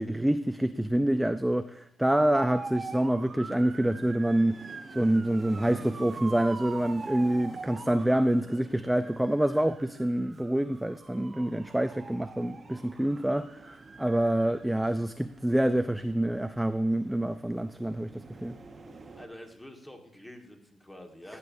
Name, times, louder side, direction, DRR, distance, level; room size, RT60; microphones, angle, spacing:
voice 1, 0.0-4.6 4.9-18.5, right 1 dB, 5° right, 0.3 m, -27 dB
sound 1, 2.1-19.3, right 4 dB, 35° right, 0.9 m, -44 dB
voice 2, 19.2-21.4, left 1 dB, 10° left, 1.4 m, -47 dB
14.0 x 6.7 x 2.6 m
cardioid pair, 90°, 0 cm